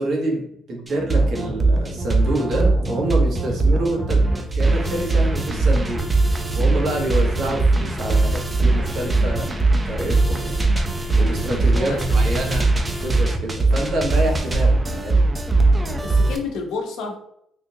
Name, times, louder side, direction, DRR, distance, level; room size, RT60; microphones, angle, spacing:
voice 1, 0.0-4.2 4.5-6.0 6.5-9.5 9.8-10.5 11.2-15.2, right 1 dB, 65° right, -1 dB, 1.1 m, -27 dB
sound 1, 0.9-16.4, right 2 dB, 20° right, 0.5 m, -20 dB
voice 2, 11.7-12.2 16.0-17.2, left 4 dB, 85° left, 2 dB, 0.7 m, -30 dB
3.7 x 2.5 x 2.7 m, 0.73 s
cardioid pair, 90°, 0 cm